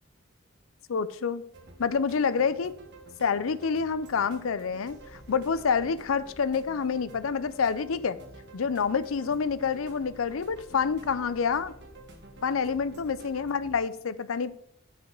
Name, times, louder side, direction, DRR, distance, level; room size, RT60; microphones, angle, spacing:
voice 1, 0.9-1.4 1.8-2.7 3.2-8.2 8.5-11.7 12.4-14.5, left 6 dB, 85° left, 15 dB, 0.5 m, -28 dB
sound 1, 1.5-13.8, right 2 dB, 55° right, 1.7 m, -50 dB
8.7 x 5.1 x 6.0 m, 0.73 s
head